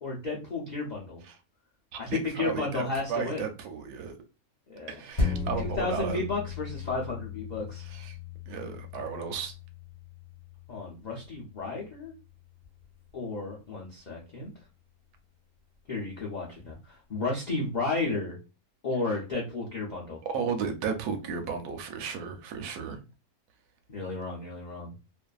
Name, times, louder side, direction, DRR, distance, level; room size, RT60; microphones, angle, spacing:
voice 1, 0.0-1.2 2.0-3.4 4.7-4.9 5.6-7.9 10.7-12.1 13.1-14.5 15.9-18.4 18.8-20.2 23.9-24.9, left 3 dB, 85° left, 0.4 m, -33 dB
voice 2, 1.9-4.1 4.9-6.2 7.8-8.2 8.5-9.5 19.0-19.2 20.2-23.0, right 6 dB, 90° right, 1.1 m, -34 dB
sound 1, 5.2-14.0 14.4-14.5, left 4 dB, 30° left, 0.9 m, -37 dB
2.5 x 2.3 x 2.2 m
omnidirectional pair, 1.6 m